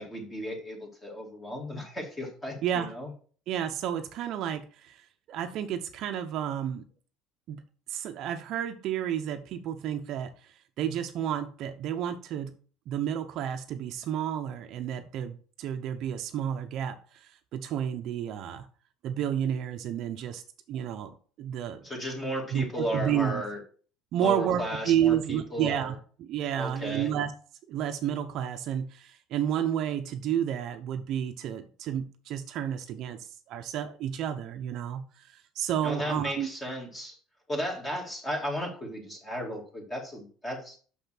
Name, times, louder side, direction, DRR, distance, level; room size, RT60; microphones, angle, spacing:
voice 1, 0.0-3.1 21.8-23.6 24.1-25.9 26.6-27.1 35.8-37.2 37.5-40.8, equal, 15° left, 2.5 m, -35 dB
voice 2, 3.5-6.8 7.5-7.6 7.9-12.5 12.9-18.7 19.0-20.4 20.7-21.8 22.5-23.4 24.1-27.3 27.7-36.5, right 10 dB, 45° right, 0.8 m, -31 dB
6.3 x 5.8 x 5.9 m
cardioid pair, 155°, 0 cm